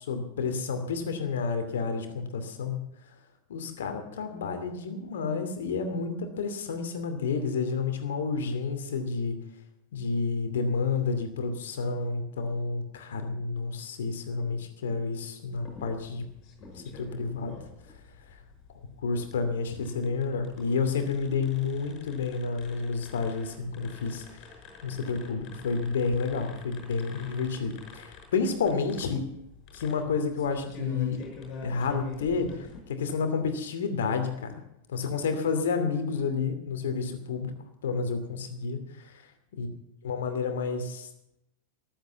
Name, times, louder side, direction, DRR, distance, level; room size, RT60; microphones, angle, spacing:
voice 1, 0.0-2.8 3.5-9.4 9.9-16.3 16.7-17.6 19.0-24.4 24.8-29.3 29.7-31.2 31.6-34.6 34.9-37.5 37.8-39.1 39.6-39.7 40.0-41.1, left 4 dB, 60° left, 7 dB, 2.6 m, -30 dB
sound 1, 15.5-32.8, left 4 dB, 35° left, 6.2 m, -47 dB
14.5 x 12.0 x 7.1 m, 0.80 s
figure-of-eight pair, 90°, 0 cm